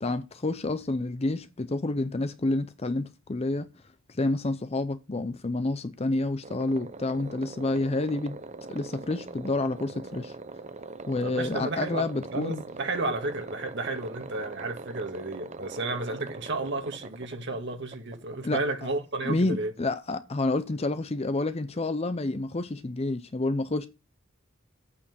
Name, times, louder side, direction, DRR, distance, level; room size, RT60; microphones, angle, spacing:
voice 1, 0.0-3.7 4.1-8.4 8.7-10.3 11.1-12.6 18.4-18.9 19.2-23.9, left 2 dB, 30° left, 0.6 m, -29 dB
sound 1, 6.4-19.1, right 3 dB, 35° right, 0.7 m, -42 dB
voice 2, 11.2-19.7, right 2 dB, 60° right, 1.8 m, -32 dB
8.7 x 7.8 x 6.1 m
head